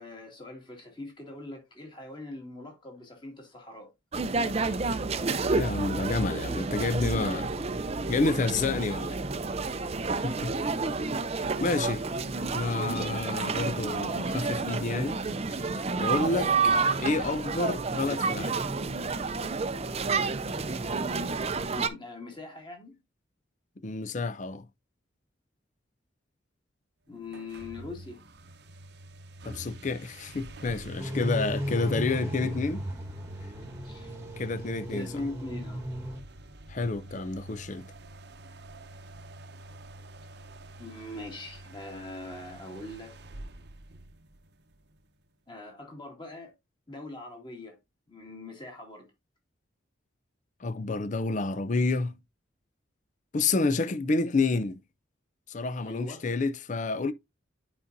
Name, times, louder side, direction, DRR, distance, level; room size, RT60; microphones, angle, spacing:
voice 1, 0.0-3.9 8.7-9.0 21.7-23.0 27.1-28.2 32.4-32.5 33.8-34.1 34.9-35.9 40.8-43.2 45.5-46.5 46.9-47.8 48.1-49.1 55.8-56.2, left 2 dB, 25° left, 2.3 m, -42 dB
sound 1, 4.1-21.9, right 4 dB, 30° right, 0.5 m, -30 dB
voice 2, 5.5-7.5 8.1-9.2 10.2-10.6 11.6-12.0 12.5-15.2 15.6-18.6 23.8-24.6 29.4-32.8 34.4-35.2 36.7-37.9 50.6-52.2 53.3-54.8 55.5-57.1, left 3 dB, 40° left, 0.5 m, -29 dB
sound 2, 27.2-44.7, right 1 dB, 60° right, 0.8 m, -45 dB
sound 3, 31.0-36.2, equal, 15° right, 1.3 m, -36 dB
9.7 x 5.1 x 2.6 m
head